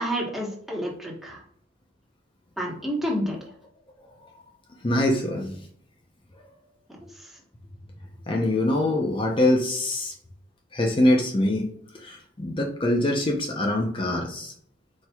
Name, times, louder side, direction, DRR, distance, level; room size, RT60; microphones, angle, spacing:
voice 1, 0.0-1.4 2.6-3.4, equal, ahead, -3 dB, 1.1 m, -29 dB
voice 2, 4.8-5.6 8.3-10.1 10.7-14.5, left 1 dB, 25° left, 1 dB, 0.6 m, -24 dB
4.6 x 4.3 x 2.3 m, 0.66 s
head